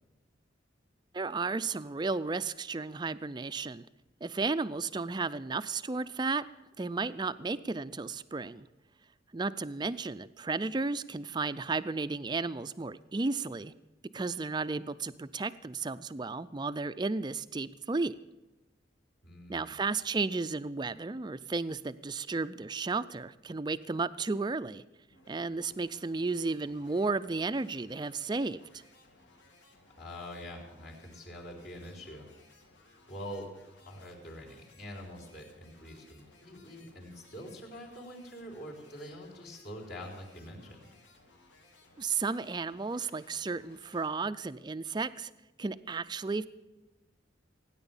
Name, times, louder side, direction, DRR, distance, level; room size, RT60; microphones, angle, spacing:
voice 1, 1.1-3.9 4.2-6.4 6.8-8.7 9.3-13.7 14.1-18.2 19.5-24.8 25.3-28.8 42.0-45.3 45.6-46.5, right 3 dB, 20° right, 15 dB, 0.4 m, -33 dB
voice 2, 19.2-19.8 30.0-32.3 33.1-33.5 33.9-40.9, equal, 55° left, -2 dB, 3.9 m, -45 dB
sound 1, 25.1-44.1, left 2 dB, 70° left, 2.4 m, -61 dB
17.5 x 9.8 x 7.2 m, 1.1 s
head